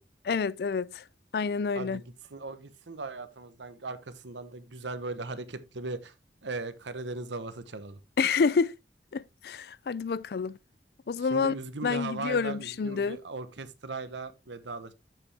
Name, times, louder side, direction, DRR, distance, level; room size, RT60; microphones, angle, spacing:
voice 1, 0.2-1.0 1.3-2.0 8.2-8.7 9.1-10.6 11.1-11.5 11.8-13.2, left 5 dB, 60° left, 0.4 m, -28 dB
voice 2, 1.7-6.1 6.4-8.0 11.2-14.9, right 3 dB, 90° right, 1.0 m, -38 dB
7.9 x 7.2 x 3.4 m
head